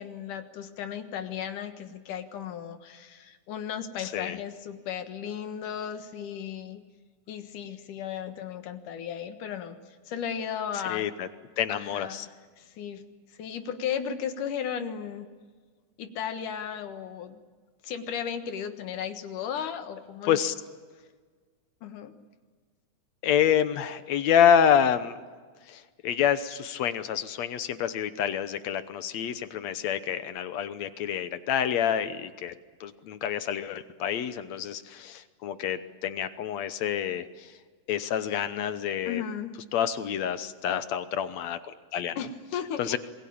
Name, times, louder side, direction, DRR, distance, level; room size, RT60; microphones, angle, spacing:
voice 1, 0.0-6.8 7.3-9.8 10.1-11.1 11.7-13.0 13.3-15.3 16.0-17.4 17.8-20.4 21.8-22.1 39.1-39.5 42.2-43.0, left 8 dB, 85° left, 8 dB, 3.0 m, -35 dB
voice 2, 4.0-4.4 10.9-11.3 11.6-12.3 20.3-20.5 23.2-25.2 25.7-32.5 32.8-37.3 37.9-39.2 39.7-42.2 42.8-43.0, left 9 dB, 65° left, 12 dB, 2.1 m, -27 dB
27.5 x 21.5 x 8.7 m, 1.5 s
omnidirectional pair, 3.5 m